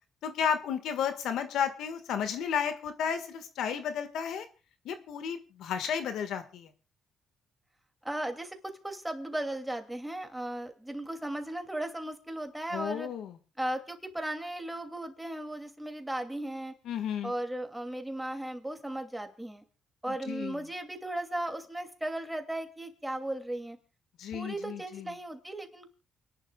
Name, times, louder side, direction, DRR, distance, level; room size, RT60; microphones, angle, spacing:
voice 1, 0.2-4.4 4.8-6.7 12.7-13.4 16.8-17.3 20.1-20.6 24.2-25.1, left 8 dB, 80° left, 8 dB, 1.7 m, -33 dB
voice 2, 8.0-13.1 13.6-16.7 17.2-19.6 20.0-23.8 24.3-25.9, right 1 dB, 5° right, 5 dB, 2.6 m, -36 dB
28.5 x 11.0 x 2.4 m, 0.33 s
cardioid pair, 90°, 0 cm